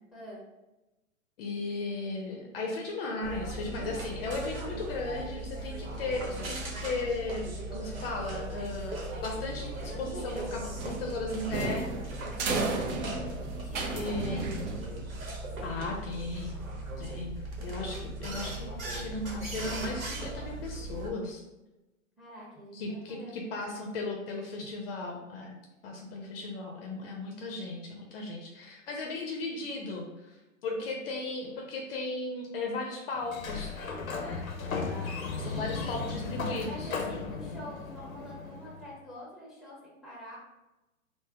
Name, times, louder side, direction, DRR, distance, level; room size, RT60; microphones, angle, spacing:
voice 1, 0.1-0.4 12.3-12.7 13.5-14.7 22.2-23.8 30.8-31.0 34.9-35.9 36.6-40.4, equal, ahead, -4 dB, 0.8 m, -46 dB
voice 2, 1.4-11.9 13.9-14.4 15.6-16.5 17.0-21.4 22.7-25.5 25.8-33.7 34.2-34.4 35.4-36.9, left 3 dB, 45° left, 1 dB, 0.6 m, -36 dB
sound 1, 3.2-21.1, right 1 dB, 80° right, 0.9 m, -38 dB
sound 2, 10.8-15.2, right 3 dB, 35° right, 0.4 m, -33 dB
Sliding door, 33.2-38.9, left 4 dB, 85° left, 0.6 m, -36 dB
3.3 x 2.0 x 3.5 m, 1.0 s
hypercardioid pair, 110°, 40 cm